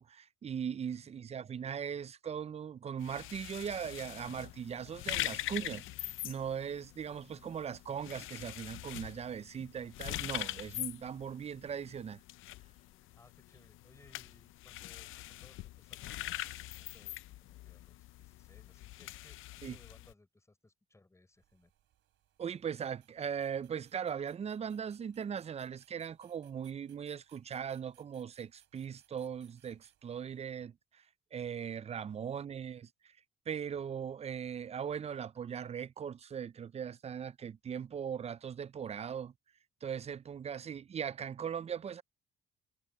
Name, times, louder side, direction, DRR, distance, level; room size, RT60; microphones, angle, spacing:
voice 1, 0.0-12.2 19.6-19.8 22.4-31.0 31.3-32.9 33.5-39.3 39.8-42.0, right 7 dB, 30° right, 0.4 m, -39 dB
voice 2, 0.7-1.2 13.0-21.7 31.9-32.1, left 2 dB, 15° left, 5.0 m, -64 dB
sound 1, 3.0-20.1, left 16 dB, 85° left, 0.6 m, -43 dB
sound 2, 21.3-30.5, right 12 dB, 80° right, 3.3 m, -70 dB
cardioid pair, 90°, 20 cm